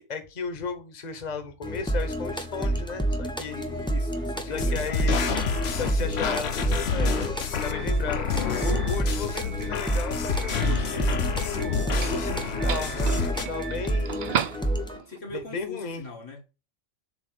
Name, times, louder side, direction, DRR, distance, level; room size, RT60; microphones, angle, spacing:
voice 1, 0.0-3.6 4.5-5.2 5.7-7.3 7.6-14.2 15.3-16.0, left 5 dB, 40° left, 1.0 m, -35 dB
sound 1, 1.6-15.0, right 1 dB, 5° left, 0.7 m, -29 dB
voice 2, 3.5-5.4 7.8-8.5 14.9-16.4, left 3 dB, 90° left, 2.2 m, -41 dB
sound 2, 4.6-13.5, left 6 dB, 60° left, 1.0 m, -29 dB
Doorbell, 6.1-15.2, right 8 dB, 55° right, 0.6 m, -37 dB
7.3 x 2.9 x 5.9 m
omnidirectional pair, 1.3 m